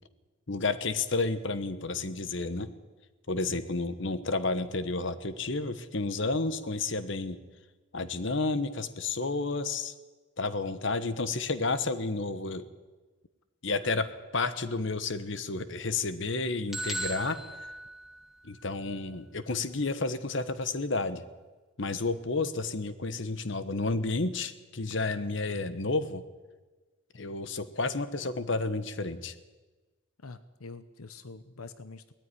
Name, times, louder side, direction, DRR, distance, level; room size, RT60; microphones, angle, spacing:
voice 1, 0.5-2.7 3.3-7.4 7.9-9.9 10.4-12.7 13.6-14.1 14.3-17.4 18.4-21.2 21.8-26.2 27.1-29.3, left 3 dB, 55° left, 13 dB, 1.2 m, -31 dB
sound 1, 16.7-18.7, right 2 dB, ahead, 0.9 m, -37 dB
voice 2, 30.2-32.1, left 4 dB, 90° left, 13 dB, 0.9 m, -45 dB
19.0 x 14.0 x 9.9 m, 1.3 s
head